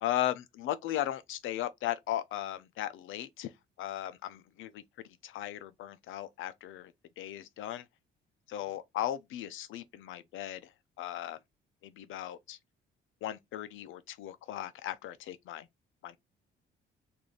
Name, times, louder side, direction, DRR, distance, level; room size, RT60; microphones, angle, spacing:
voice 1, 0.0-3.5 3.8-4.8 5.2-7.8 8.5-10.7 11.0-11.4 11.8-12.6 13.2-15.7 16.0-16.2, left 13 dB, 80° left, 0.6 m, -37 dB
3.8 x 2.6 x 3.2 m
cardioid pair, 90°, 20 cm